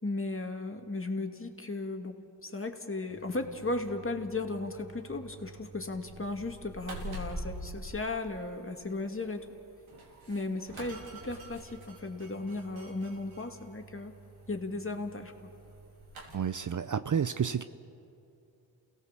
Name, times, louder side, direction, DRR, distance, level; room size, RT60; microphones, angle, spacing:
voice 1, 0.0-9.5 10.3-14.1 14.5-15.5, left 2 dB, 25° left, 4 dB, 2.5 m, -36 dB
Fridge Open Door, 3.1-16.4, right 1 dB, 80° right, 4.0 m, -47 dB
voice 2, 16.3-17.6, right 7 dB, 40° right, 12 dB, 0.7 m, -30 dB
28.5 x 17.0 x 7.6 m, 2.7 s
supercardioid pair, 45°, 47 cm